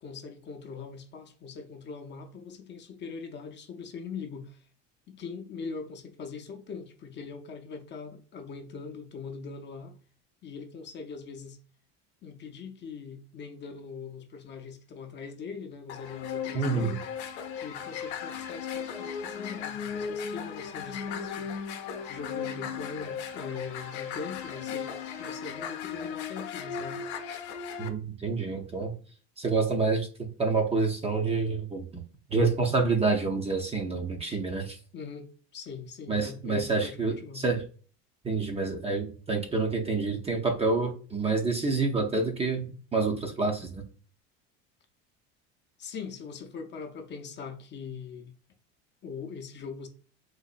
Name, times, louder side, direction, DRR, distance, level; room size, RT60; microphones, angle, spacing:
voice 1, 0.0-4.6 5.1-10.0 10.4-11.6 12.2-17.1 17.6-21.5 22.1-27.0 34.9-37.5 45.8-48.3 49.0-49.9, left 5 dB, 35° left, 0.5 m, -41 dB
sound 1, 15.9-27.9, left 7 dB, 80° left, 0.7 m, -36 dB
voice 2, 16.5-17.0 27.8-28.9 29.4-31.9 32.3-34.8 36.1-37.6 38.2-43.8, right 3 dB, 20° right, 0.5 m, -28 dB
3.9 x 2.5 x 2.4 m
supercardioid pair, 115°, 33 cm